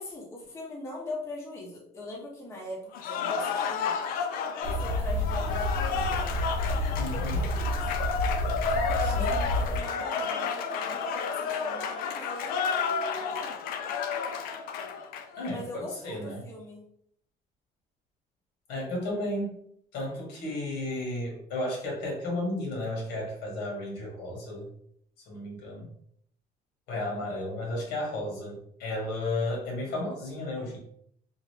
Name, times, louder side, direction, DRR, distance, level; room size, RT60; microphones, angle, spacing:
voice 1, 0.0-4.3 4.6-6.3 6.6-8.0 8.7-13.6 15.5-16.8 26.9-27.5, left 2 dB, 15° left, -3 dB, 0.6 m, -41 dB
Cheering / Applause, 2.9-15.5, left 5 dB, 65° left, 0.4 m, -31 dB
sound 1, 4.6-9.8, left 1 dB, 90° right, 0.9 m, -30 dB
voice 2, 7.0-7.4 9.0-9.3 15.4-16.4 18.7-19.5 19.9-24.7 25.3-25.9 26.9-30.8, left 1 dB, 85° left, -2 dB, 1.3 m, -33 dB
2.9 x 2.4 x 3.1 m, 0.69 s
cardioid pair, 160°, 16 cm